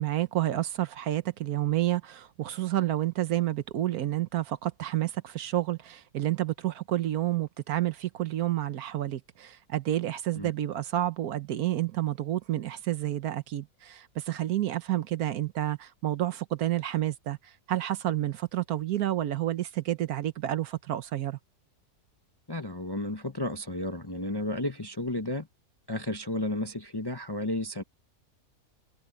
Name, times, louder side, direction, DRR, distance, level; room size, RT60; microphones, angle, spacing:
voice 1, 0.0-21.4, right 13 dB, 70° right, 1.3 m, -30 dB
voice 2, 22.5-25.5 25.9-27.8, left 1 dB, 20° left, 0.7 m, -32 dB
omnidirectional pair, 1.7 m